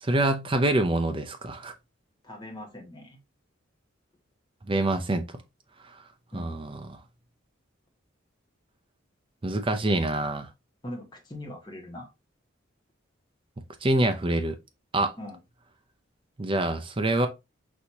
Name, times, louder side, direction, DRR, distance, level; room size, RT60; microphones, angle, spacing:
voice 1, 0.0-1.7 4.7-5.3 5.8-6.0 6.3-7.0 9.4-10.5 13.8-14.6 14.9-15.1 16.4-17.3, right 2 dB, 25° right, 0.5 m, -26 dB
voice 2, 2.2-3.2 6.3-6.6 10.8-12.1 15.2-15.4, left 1 dB, 20° left, 1.2 m, -41 dB
6.1 x 2.7 x 2.8 m
head